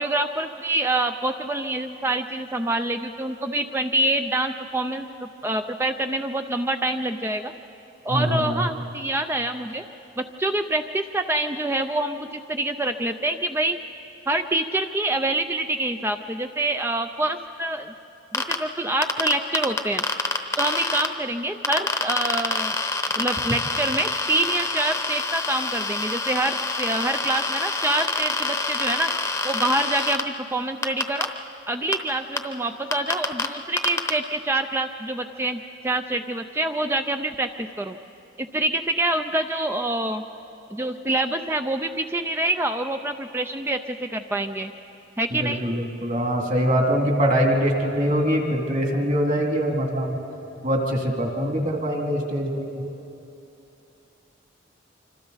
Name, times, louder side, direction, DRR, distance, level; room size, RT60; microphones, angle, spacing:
voice 1, 0.0-7.5 8.0-9.8 10.2-13.8 14.3-17.9 18.3-20.0 20.6-22.7 23.2-29.1 29.4-31.3 31.7-38.0 38.4-40.2 40.7-44.7 45.2-45.6, right 2 dB, 10° right, 7 dB, 0.4 m, -26 dB
voice 2, 8.1-8.7 45.3-50.1 50.6-52.8, equal, 40° right, 1 dB, 2.4 m, -23 dB
sound 1, 18.3-18.6 19.0-21.1 21.6-30.2 30.8-31.2 31.9-32.0 32.4-32.5 32.9-33.5 33.8-34.1, left 3 dB, 15° left, 0.9 m, -26 dB
26.0 x 26.0 x 4.0 m, 2.9 s
head